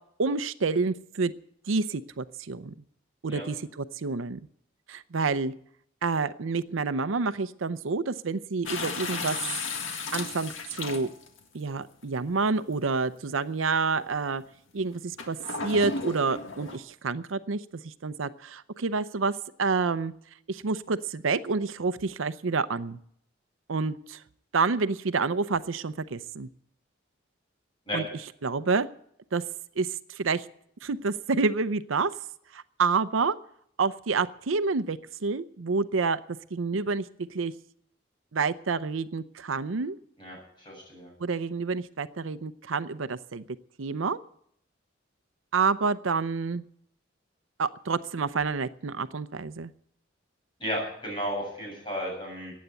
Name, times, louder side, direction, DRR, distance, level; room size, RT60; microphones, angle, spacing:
voice 1, 0.2-1.3 1.7-2.7 3.2-4.4 4.9-5.5 6.0-9.4 10.1-11.1 11.5-14.4 14.7-15.4 15.6-20.1 20.5-23.0 23.7-24.2 24.5-26.5 27.9-28.1 28.4-28.9 29.3-29.4 29.8-30.5 30.8-32.1 32.5-33.3 33.8-36.2 36.5-37.5 38.3-40.0 41.2-43.4 43.8-44.2 45.5-46.6 47.6-49.7, right 4 dB, 85° right, 13 dB, 0.6 m, -28 dB
sound 1, 8.6-11.4 12.3-12.4 15.2-16.8, left 4 dB, 80° left, 1.8 m, -34 dB
voice 2, 40.2-41.1 50.6-52.5, equal, 25° left, -2 dB, 7.5 m, -34 dB
15.0 x 9.4 x 8.8 m, 0.68 s
head